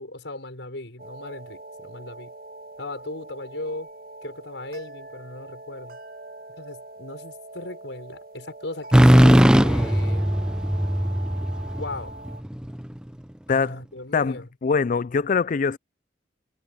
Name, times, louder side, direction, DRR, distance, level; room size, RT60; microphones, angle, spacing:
voice 1, 0.0-2.3 2.8-3.9 4.2-6.0 6.6-10.3 11.8-12.1 13.5-14.5, left 2 dB, 85° left, 5.6 m, -37 dB
sound 1, 1.0-12.4, right 2 dB, 55° right, 1.4 m, -42 dB
sound 2, 8.9-12.7, equal, 5° right, 0.5 m, -18 dB
voice 2, 13.5-13.8 14.1-15.8, left 5 dB, 50° left, 0.4 m, -23 dB
head